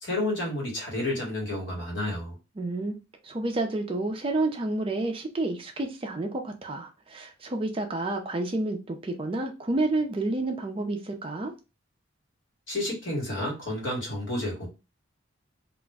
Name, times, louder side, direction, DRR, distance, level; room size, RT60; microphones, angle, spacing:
voice 1, 0.0-2.3 12.7-14.7, left 1 dB, 65° left, 1.3 m, -30 dB
voice 2, 2.6-3.0 3.2-11.5, right 2 dB, 25° right, 0.4 m, -30 dB
2.4 x 2.0 x 3.4 m
head